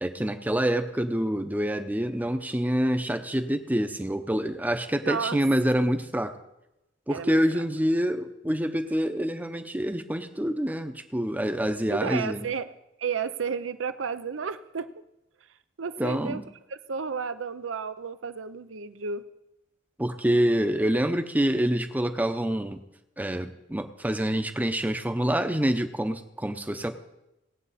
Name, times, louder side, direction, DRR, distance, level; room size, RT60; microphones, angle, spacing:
voice 1, 0.0-6.4 7.1-12.5 16.0-16.4 20.0-22.8 23.2-26.9, equal, 10° right, 8 dB, 0.7 m, -26 dB
voice 2, 5.0-5.4 7.1-7.6 11.9-14.9 15.8-16.4 16.7-19.2, right 6 dB, 80° right, 13 dB, 0.6 m, -32 dB
19.0 x 8.4 x 4.2 m, 0.91 s
head